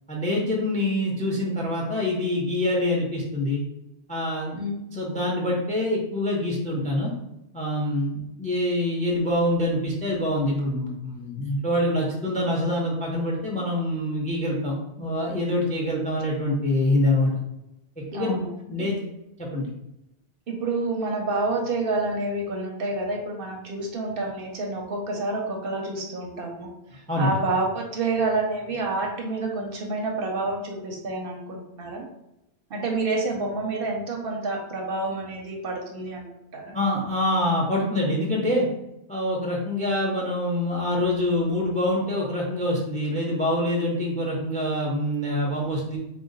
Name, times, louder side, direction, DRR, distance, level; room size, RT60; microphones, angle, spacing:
voice 1, 0.1-3.6 4.1-4.6 4.9-7.1 7.5-17.3 18.1-18.4 18.7-19.0 19.4-19.7 27.1-27.3 36.7-38.7 39.1-46.0, left 1 dB, 10° left, -2 dB, 0.4 m, -25 dB
voice 2, 18.1-18.5 20.5-32.1 32.7-36.3 36.5-36.8, right 3 dB, 60° right, 1 dB, 0.7 m, -28 dB
3.8 x 2.1 x 3.8 m, 0.89 s
omnidirectional pair, 1.2 m